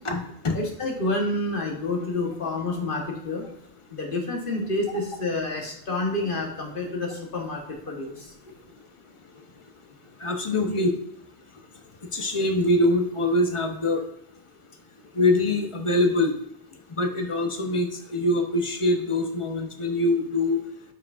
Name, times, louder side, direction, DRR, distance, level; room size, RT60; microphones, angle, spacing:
voice 1, 0.0-0.6 10.2-10.9 12.1-14.0 15.2-16.3 17.0-20.6, left 2 dB, 30° left, 5 dB, 0.8 m, -23 dB
voice 2, 0.5-3.4 3.9-7.6 7.9-8.3, left 2 dB, 50° left, 0 dB, 1.4 m, -28 dB
8.2 x 5.7 x 2.5 m, 0.81 s
omnidirectional pair, 1.1 m